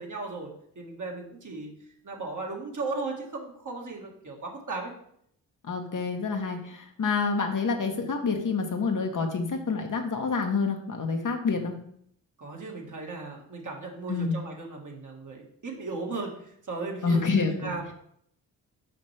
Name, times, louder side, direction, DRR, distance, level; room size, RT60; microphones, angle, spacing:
voice 1, 0.0-1.7 2.0-4.9 12.4-17.9, right 3 dB, 45° right, 0 dB, 1.7 m, -36 dB
voice 2, 5.6-11.7 14.1-14.4 17.0-17.7, left 4 dB, 45° left, 3 dB, 1.1 m, -28 dB
5.9 x 5.2 x 3.3 m, 0.69 s
supercardioid pair, 45°, 42 cm